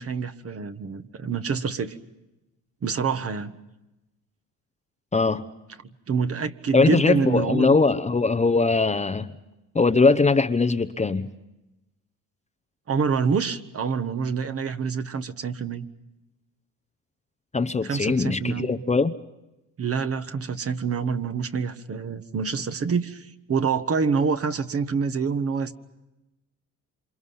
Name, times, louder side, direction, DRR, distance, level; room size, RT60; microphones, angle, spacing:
voice 1, 0.0-2.0 2.8-3.6 6.1-7.7 12.9-15.9 17.8-18.7 19.8-25.8, right 5 dB, 40° right, 1.5 m, -26 dB
voice 2, 5.1-5.5 6.7-9.3 9.7-11.3 17.5-19.1, left 4 dB, 20° left, 0.9 m, -21 dB
28.5 x 26.5 x 5.7 m
cardioid pair, 100°, 35 cm